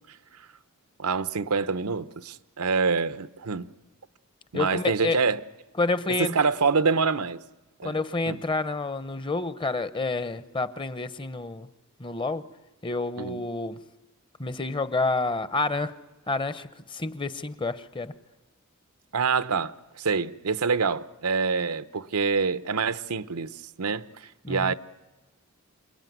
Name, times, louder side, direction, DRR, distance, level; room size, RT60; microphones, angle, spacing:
voice 1, 1.0-3.7 4.5-5.4 6.2-7.4 7.8-8.0 8.3-8.4 13.2-13.4 19.1-23.5 23.8-24.7, right 5 dB, 90° right, 0.8 m, -26 dB
voice 2, 4.5-5.2 5.8-6.3 7.8-11.7 12.0-12.5 12.8-13.8 14.4-15.9 16.3-18.1 24.4-24.7, left 3 dB, 20° left, 0.8 m, -29 dB
27.5 x 20.0 x 9.4 m
head